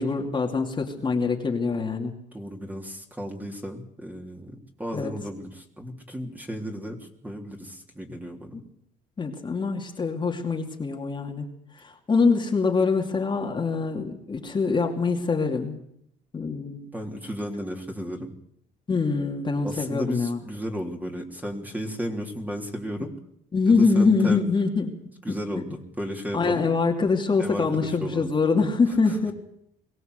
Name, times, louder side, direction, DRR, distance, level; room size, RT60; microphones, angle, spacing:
voice 1, 0.0-2.1 4.9-5.1 9.2-11.5 11.8-15.8 16.3-16.9 18.9-20.4 23.5-25.0 25.3-25.6 26.3-29.3, left 4 dB, 25° left, 1 dB, 2.7 m, -24 dB
voice 2, 2.3-8.6 16.9-18.3 19.6-23.1 23.7-24.4 25.2-26.7 27.4-28.3, equal, 10° right, 2 dB, 3.5 m, -34 dB
22.5 x 16.5 x 8.2 m, 0.72 s
cardioid pair, 110°, 17 cm